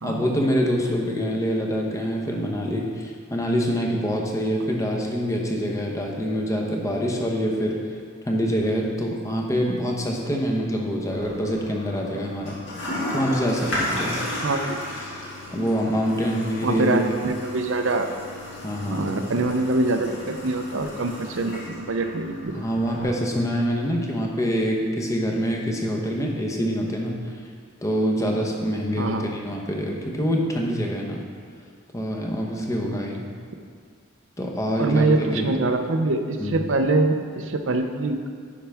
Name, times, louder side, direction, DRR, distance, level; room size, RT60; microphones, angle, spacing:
voice 1, 0.0-7.8 8.2-12.6 13.1-14.2 15.5-17.2 18.6-19.1 22.5-27.3 27.8-31.2 31.9-33.3 34.4-35.5 36.4-36.6, equal, 15° left, 0 dB, 0.8 m, -25 dB
Toilet flush, 11.1-23.1, left 1 dB, 60° left, 1.9 m, -34 dB
voice 2, 14.4-14.8 15.6-15.8 16.6-18.1 18.9-22.7 29.0-29.3 34.8-38.3, right 2 dB, 65° right, 6 dB, 0.6 m, -24 dB
10.0 x 5.7 x 3.5 m, 2.1 s
head